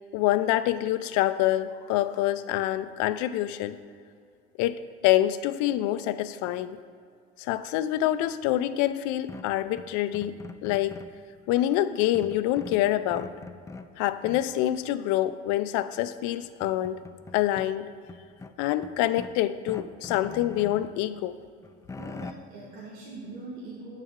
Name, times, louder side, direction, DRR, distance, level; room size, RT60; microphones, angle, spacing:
voice 1, 0.1-3.8 4.6-6.8 7.4-10.3 10.6-11.0 11.5-13.3 14.0-17.0 17.3-17.9 18.6-21.4, left 13 dB, 75° left, 13 dB, 0.5 m, -26 dB
sound 1, 9.3-11.2 12.1-13.9 14.2-14.7 16.0-16.1 16.4-17.7 18.1-19.4 19.7-20.9 21.4-22.3, left 4 dB, 10° left, 0.3 m, -43 dB
voice 2, 22.0-24.0, right 2 dB, 70° right, -6 dB, 1.6 m, -42 dB
8.3 x 6.5 x 3.7 m, 2.2 s
hypercardioid pair, 65°, 30 cm